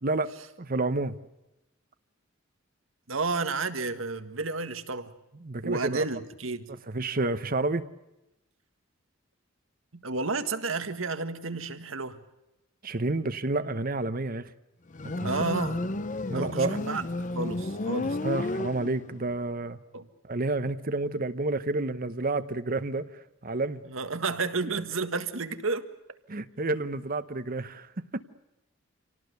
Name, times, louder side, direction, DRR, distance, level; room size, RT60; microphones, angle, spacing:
voice 1, 0.0-0.3 0.6-1.1 5.4-6.0 6.9-7.8 12.8-14.5 15.0-15.3 16.3-16.8 18.2-19.8 20.2-23.1 23.4-23.8 26.3-28.2, right 2 dB, 45° right, 12 dB, 1.0 m, -30 dB
voice 2, 3.1-5.1 5.6-6.7 9.9-12.2 15.2-15.8 16.3-17.1 17.3-18.2 19.9-20.1 23.9-25.9, right 3 dB, 90° right, 9 dB, 1.7 m, -31 dB
Motorcycle, 14.9-19.3, left 2 dB, 40° left, 0.8 m, -32 dB
27.0 x 18.5 x 8.1 m, 0.95 s
head